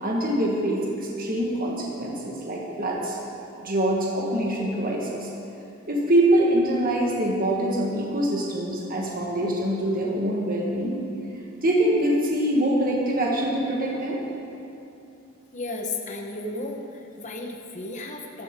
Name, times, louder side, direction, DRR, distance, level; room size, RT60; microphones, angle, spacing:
voice 1, 0.0-3.2 3.6-5.3 5.9-11.0 11.6-14.2, right 1 dB, 45° right, -3 dB, 1.6 m, -24 dB
voice 2, 15.5-18.4, left 2 dB, 35° left, 1 dB, 1.3 m, -34 dB
15.5 x 13.0 x 3.8 m, 2.7 s
head